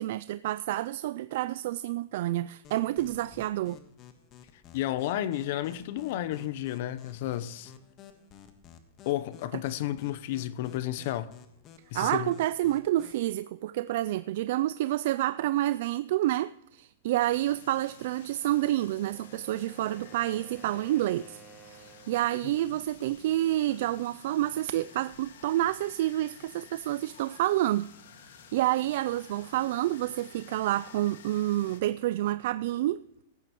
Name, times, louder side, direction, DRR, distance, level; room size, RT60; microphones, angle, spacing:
voice 1, 0.0-3.8 11.9-21.4 21.7-27.9 28.5-33.0, right 14 dB, 60° right, 0.3 m, -29 dB
sound 1, 2.6-13.3, left 8 dB, 35° left, 1.4 m, -53 dB
voice 2, 4.7-7.7 9.1-11.3 11.9-12.3, left 13 dB, 55° left, 0.7 m, -32 dB
sound 2, 17.2-31.8, left 7 dB, 75° left, 1.9 m, -53 dB
Wind instrument woodwind instrument, 18.8-22.4, right 6 dB, 20° right, 1.9 m, -53 dB
15.5 x 10.5 x 3.0 m
hypercardioid pair, 140°, 0 cm